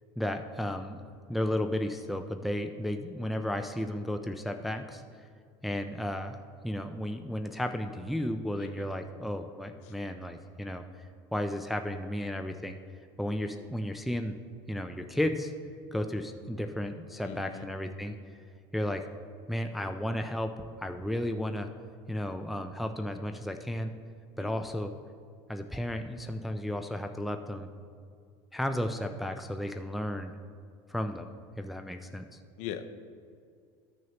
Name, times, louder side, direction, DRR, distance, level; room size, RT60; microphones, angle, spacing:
voice 1, 0.2-1.0 1.3-5.0 5.6-6.4 6.6-10.8 11.3-12.8 13.2-14.3 14.7-15.5 15.9-18.2 18.7-19.0 19.5-20.5 20.8-21.7 22.1-23.9 24.4-24.9 25.5-27.7 28.5-30.3 30.9-32.4, left 1 dB, ahead, 6 dB, 0.3 m, -33 dB
voice 2, 17.2-17.7 24.4-24.6 32.6-33.0, left 9 dB, 60° left, 9 dB, 0.6 m, -41 dB
13.5 x 6.3 x 2.9 m, 2.2 s
cardioid pair, 145°, 13 cm